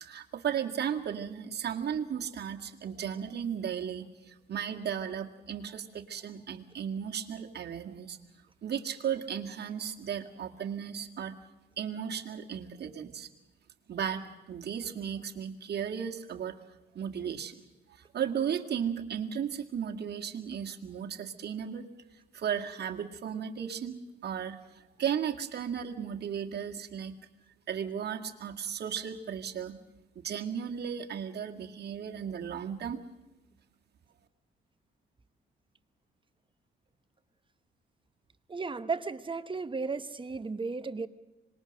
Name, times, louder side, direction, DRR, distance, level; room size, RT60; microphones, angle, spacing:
voice 1, 0.0-8.2 8.6-11.4 11.8-13.3 13.9-16.6 17.0-17.6 18.1-21.8 22.3-24.6 25.0-27.2 27.7-29.8 30.2-33.0, right 8 dB, 55° right, 3 dB, 1.9 m, -35 dB
voice 2, 38.5-41.1, right 4 dB, 25° right, 11 dB, 1.0 m, -34 dB
25.5 x 20.0 x 6.5 m, 1.0 s
cardioid pair, 90°, 20 cm